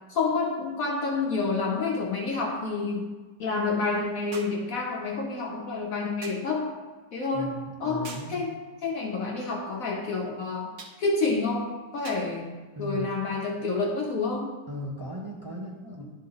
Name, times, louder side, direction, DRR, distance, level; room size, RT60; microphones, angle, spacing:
voice 1, 0.1-3.1 3.4-6.7 7.1-10.7 11.0-14.5, left 3 dB, 65° left, 0 dB, 1.0 m, -29 dB
sound 1, 0.5-0.6 4.3-4.7 6.2-6.5 8.0-8.4 10.8-11.0 12.0-12.3 13.4-13.5, right 4 dB, 65° right, 1.4 m, -43 dB
voice 2, 7.3-8.4 12.8-13.1 14.7-16.0, left 1 dB, 15° right, -5 dB, 1.1 m, -37 dB
11.0 x 3.8 x 4.0 m, 1.3 s
omnidirectional pair, 1.8 m